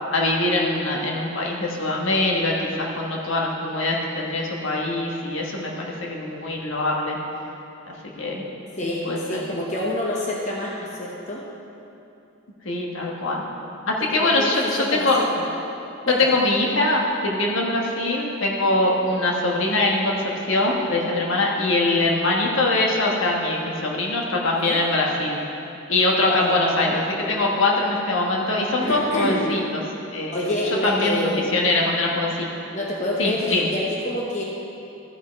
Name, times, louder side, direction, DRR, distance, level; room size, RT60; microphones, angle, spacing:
voice 1, 0.1-7.2 7.8-8.4 8.8-9.6 12.6-13.4 13.8-15.2 16.1-25.4 25.9-29.6 30.1-30.4 30.8-32.5 33.2-33.7, left 2 dB, 70° left, -2 dB, 1.3 m, -23 dB
voice 2, 8.8-11.5 14.1-15.4 16.1-16.3 24.6-24.8 26.2-26.7 28.8-29.5 30.3-31.5 32.7-34.4, left 1 dB, 35° left, -3 dB, 0.9 m, -27 dB
13.5 x 5.4 x 4.6 m, 2.7 s
head